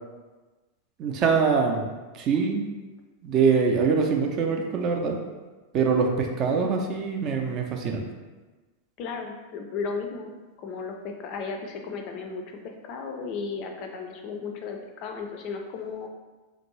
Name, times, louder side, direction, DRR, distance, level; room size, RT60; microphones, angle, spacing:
voice 1, 1.0-2.6 3.2-5.2 5.7-8.1, right 5 dB, 35° right, 2 dB, 0.4 m, -24 dB
voice 2, 9.0-10.3 10.6-16.1, left 5 dB, 40° left, 3 dB, 0.4 m, -35 dB
3.0 x 2.5 x 3.0 m, 1.2 s
figure-of-eight pair, 90°, 0 cm